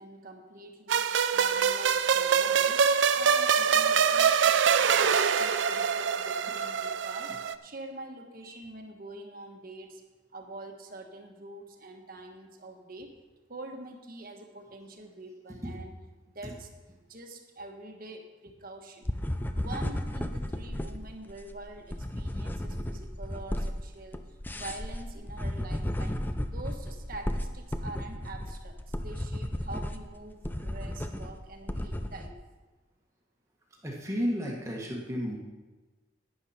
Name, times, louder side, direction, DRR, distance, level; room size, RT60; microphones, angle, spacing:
voice 1, 0.0-2.8 3.1-7.3 7.6-10.0 10.3-13.1 13.5-15.9 16.3-16.7 17.1-19.1 19.5-24.2 24.5-32.4, right 2 dB, 45° right, 3 dB, 1.4 m, -45 dB
sound 1, 0.9-7.5, right 7 dB, 65° right, 0.5 m, -24 dB
sound 2, 19.0-32.3, left 1 dB, 10° left, 0.5 m, -34 dB
voice 2, 33.8-35.4, equal, 15° right, -2 dB, 1.4 m, -32 dB
12.0 x 10.0 x 4.3 m, 1.2 s
head